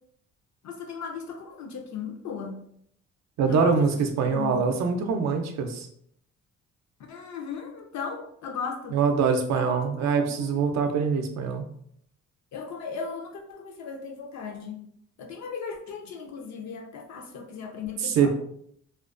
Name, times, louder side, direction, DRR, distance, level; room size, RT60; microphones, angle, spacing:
voice 1, 0.6-2.6 3.5-3.9 4.2-4.8 7.0-9.0 9.5-10.6 12.5-14.8 15.2-18.3, left 5 dB, 65° left, 3 dB, 0.6 m, -37 dB
voice 2, 3.4-5.9 8.9-11.6 18.0-18.3, right 5 dB, 65° right, 5 dB, 0.5 m, -24 dB
2.4 x 2.2 x 2.4 m, 0.68 s
cardioid pair, 90°, 30 cm